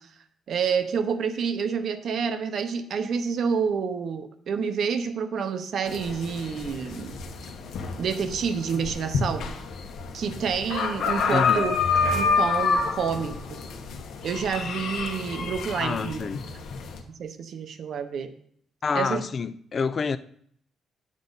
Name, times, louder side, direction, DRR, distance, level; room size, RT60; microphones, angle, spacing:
voice 1, 0.5-7.2 8.0-9.5 10.1-11.8 12.1-13.6 14.2-16.2 17.2-18.3 18.9-19.2, right 6 dB, 50° right, 0.8 m, -28 dB
sound 1, 5.9-17.0, left 5 dB, 70° left, 1.1 m, -28 dB
voice 2, 11.3-11.7 15.8-16.4 18.8-20.2, left 5 dB, 30° left, 0.3 m, -28 dB
10.0 x 7.5 x 4.0 m
cardioid pair, 170°, 0 cm